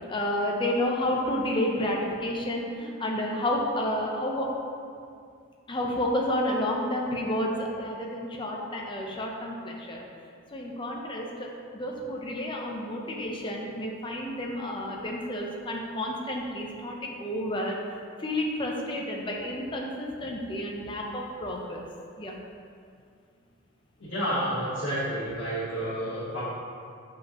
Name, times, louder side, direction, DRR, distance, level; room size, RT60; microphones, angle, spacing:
voice 1, 0.1-4.5 5.7-10.0 10.5-11.5 11.7-17.8 18.2-21.8 22.2-22.4, left 1 dB, 25° left, -1 dB, 0.6 m, -30 dB
voice 2, 24.0-26.4, equal, 80° left, -11 dB, 1.5 m, -30 dB
7.3 x 5.2 x 2.9 m, 2.3 s
head